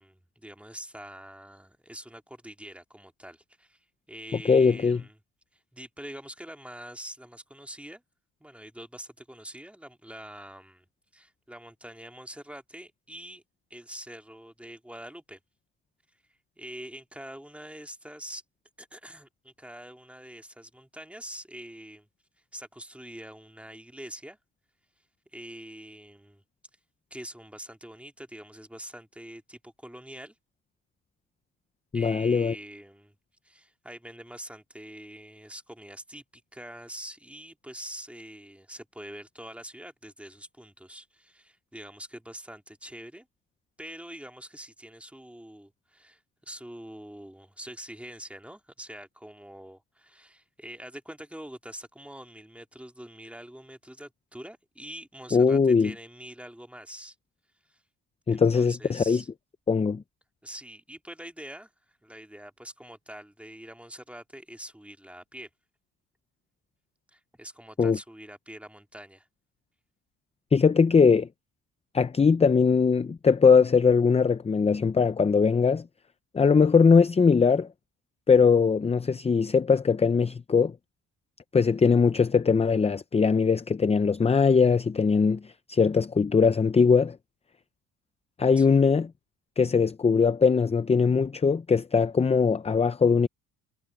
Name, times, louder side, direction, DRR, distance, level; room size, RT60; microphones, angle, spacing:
voice 1, 0.0-5.2 5.5-8.0 8.4-10.9 11.1-13.4 13.7-15.4 16.6-18.4 18.8-22.1 22.5-24.4 25.3-26.4 27.1-30.4 31.9-33.2 33.4-43.3 43.8-57.2 57.7-57.8 58.3-59.3 60.4-65.5 67.1-69.3 88.6-88.9, right 1 dB, 5° right, 2.3 m, -44 dB
voice 2, 4.5-5.0 31.9-32.5 55.3-55.9 58.3-59.2 59.7-60.0 67.8-68.0 70.5-71.3 71.9-75.8 76.3-77.7 78.3-80.7 81.5-87.2 88.4-89.1 89.6-93.3, left 5 dB, 15° left, 0.5 m, -21 dB
cardioid pair, 110°, 37 cm